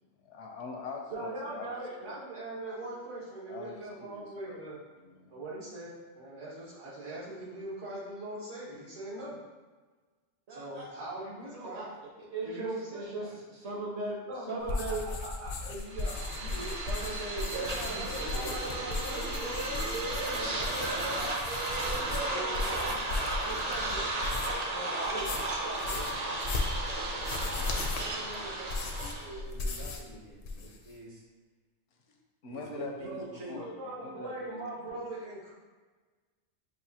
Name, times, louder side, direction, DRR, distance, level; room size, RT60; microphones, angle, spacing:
voice 1, 0.2-2.2 3.5-4.6 5.0-5.3 32.4-34.6 34.9-35.0, left 3 dB, 75° left, 1 dB, 1.0 m, -43 dB
voice 2, 1.1-4.8 5.3-9.3 10.5-11.8 12.4-13.3 14.3-14.6 15.0-16.7 17.5-21.3 21.8-24.1 24.7-26.3 33.0-35.5, right 2 dB, 80° right, -8 dB, 1.9 m, -41 dB
voice 3, 10.5-10.9 11.5-14.2 14.5-15.1 16.9-18.6 27.6-31.2 32.5-33.6, right 3 dB, 65° right, -3 dB, 1.3 m, -40 dB
sound 1, 14.6-24.7 25.0-30.1 30.4-30.9, left 3 dB, 60° left, 0.6 m, -37 dB
sound 2, 15.8-29.4, right 2 dB, 45° right, 0.6 m, -34 dB
6.6 x 2.5 x 2.8 m, 1.3 s
omnidirectional pair, 1.2 m